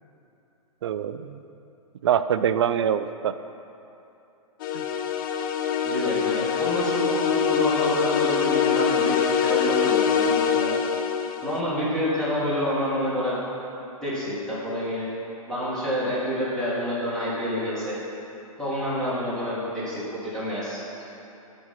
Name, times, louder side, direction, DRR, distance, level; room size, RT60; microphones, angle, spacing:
voice 1, 0.8-1.4 2.0-3.3 4.7-4.8, right 9 dB, 50° right, 12 dB, 0.4 m, -24 dB
sound 1, 4.6-11.6, left 7 dB, 35° left, 0.5 m, -24 dB
voice 2, 5.8-10.7 11.4-13.4 14.0-15.1 15.5-18.0 18.6-21.0, equal, 5° left, -10 dB, 2.3 m, -28 dB
12.0 x 4.3 x 5.8 m, 2.9 s
figure-of-eight pair, 115°, 19 cm